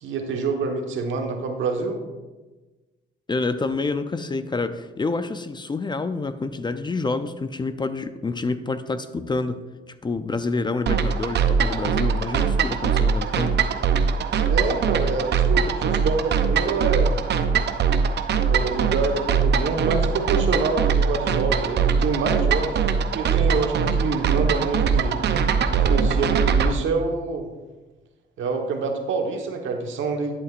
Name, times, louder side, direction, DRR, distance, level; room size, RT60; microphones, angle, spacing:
voice 1, 0.0-2.0 14.5-17.2 18.4-22.7 23.1-25.2 25.7-27.5 28.4-30.3, right 4 dB, 75° right, 3 dB, 1.3 m, -26 dB
voice 2, 3.3-9.7 10.0-13.6, left 3 dB, 25° left, 11 dB, 0.4 m, -28 dB
sound 1, 10.9-26.7, right 6 dB, 60° right, 0.6 m, -22 dB
11.0 x 8.2 x 2.5 m, 1.2 s
cardioid pair, 90°, 20 cm